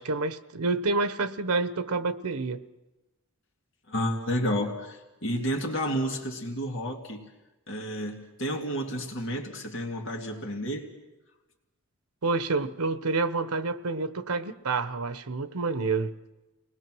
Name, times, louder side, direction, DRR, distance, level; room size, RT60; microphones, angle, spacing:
voice 1, 0.0-2.6 12.2-16.1, right 3 dB, 90° right, 12 dB, 1.0 m, -28 dB
voice 2, 3.9-7.3 7.7-10.9, equal, 55° left, 2 dB, 2.4 m, -31 dB
29.0 x 20.0 x 6.2 m, 1.1 s
head